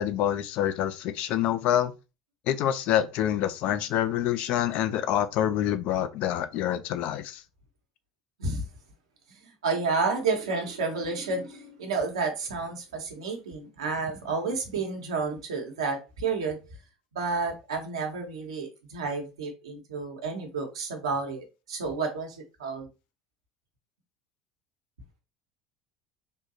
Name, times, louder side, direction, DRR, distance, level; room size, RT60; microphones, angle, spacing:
voice 1, 0.0-1.9 2.5-7.4, left 11 dB, 55° left, 0.4 m, -26 dB
voice 2, 9.6-16.6 17.1-22.9, right 4 dB, 75° right, 0.9 m, -30 dB
3.5 x 2.6 x 2.6 m
figure-of-eight pair, 70°, 3 cm